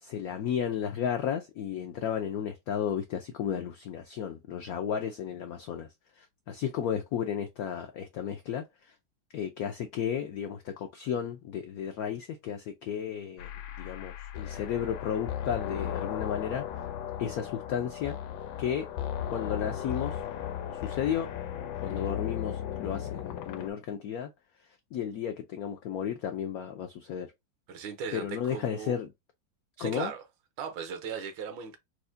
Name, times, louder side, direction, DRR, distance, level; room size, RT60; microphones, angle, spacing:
voice 1, 0.0-5.9 6.2-8.9 9.3-13.5 13.8-16.6 17.2-18.2 18.6-18.9 19.3-20.2 20.7-21.3 21.8-24.3 24.9-27.3 28.1-29.1 29.8-30.1, left 8 dB, 90° left, 0.8 m, -33 dB
sound 1, 13.4-23.7, left 10 dB, 75° left, 1.2 m, -36 dB
voice 2, 27.7-28.9 29.8-30.2 30.6-31.8, right 6 dB, 80° right, 1.5 m, -37 dB
4.6 x 2.1 x 2.6 m
omnidirectional pair, 2.1 m